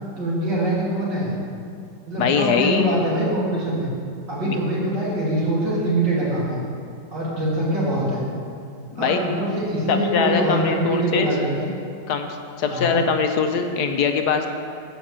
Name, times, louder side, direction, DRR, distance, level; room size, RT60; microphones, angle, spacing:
voice 1, 0.2-1.4 2.1-3.9 4.3-6.6 7.1-8.2 9.0-11.7 12.6-13.0, right 1 dB, 85° right, -6 dB, 3.3 m, -23 dB
voice 2, 2.2-2.9 4.4-4.5 8.9-9.2 9.9-11.3 12.1-12.3 12.6-14.5, left 6 dB, 70° left, 5 dB, 1.2 m, -22 dB
11.5 x 5.1 x 7.4 m, 2.4 s
omnidirectional pair, 1.9 m